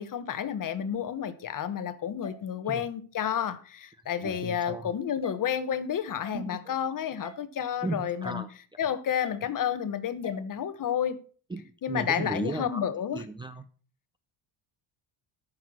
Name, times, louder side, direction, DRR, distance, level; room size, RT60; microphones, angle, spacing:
voice 1, 0.0-8.4 8.8-11.2 11.8-13.2, left 8 dB, 40° left, 1.1 m, -30 dB
sound 1, 2.2-2.3 3.2-3.3 4.2-4.4 5.2-5.3 6.2-6.4 7.2-7.4 8.2-8.4 9.2-9.4 10.2-10.4, left 5 dB, 10° left, 2.8 m, -43 dB
voice 2, 4.2-4.9 6.3-6.8 7.8-8.5 11.5-12.9 13.1-13.7, right 2 dB, 10° right, 0.6 m, -36 dB
13.5 x 6.6 x 6.1 m
cardioid pair, 140°, 49 cm